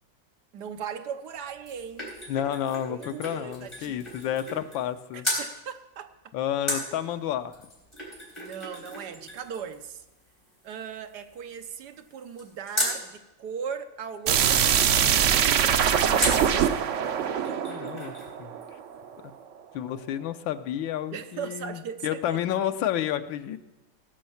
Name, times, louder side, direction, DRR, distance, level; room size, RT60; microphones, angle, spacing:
voice 1, 0.5-2.1 2.9-4.1 5.1-6.1 8.4-10.0 10.6-15.2 21.1-22.4, right 7 dB, 65° right, 8 dB, 1.3 m, -38 dB
sound 1, 1.3-4.9 5.2-5.5 6.7-13.0 16.2-16.5 17.0-17.1 17.3-18.3 18.6-18.7, equal, 15° left, 4.1 m, -35 dB
voice 2, 2.3-5.3 6.3-7.7 17.7-18.6 19.2-19.3 19.7-23.6, left 10 dB, 90° left, 10 dB, 1.5 m, -30 dB
sound 2, 14.3-19.0, right 8 dB, 85° right, 0.6 m, -23 dB
17.5 x 6.4 x 7.0 m, 0.99 s
omnidirectional pair, 2.0 m